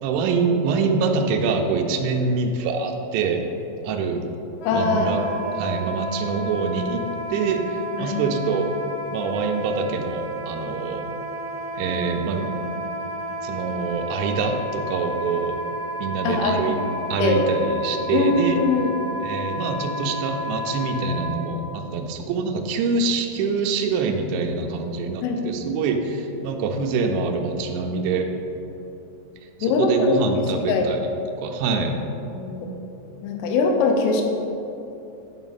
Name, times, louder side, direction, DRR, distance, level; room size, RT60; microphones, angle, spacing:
voice 1, 0.0-3.4 3.8-4.2 4.7-5.2 5.6-7.0 7.3-8.7 9.1-11.0 11.8-12.5 13.4-15.6 16.0-16.8 17.1-18.6 19.2-28.3 29.6-31.1 31.4-32.0, right 4 dB, 80° right, 3 dB, 3.0 m, -25 dB
Wind instrument woodwind instrument, 4.6-21.4, equal, 55° left, 3.0 m, -32 dB
voice 2, 4.7-5.4 8.0-8.2 16.2-16.7 17.2-17.5 18.1-19.2 25.2-25.4 27.6-28.1 29.6-30.1 30.7-30.9 32.3-32.7 33.2-34.2, left 4 dB, 85° left, 2 dB, 3.3 m, -22 dB
9.5 x 4.9 x 4.1 m, 2.9 s
omnidirectional pair, 5.5 m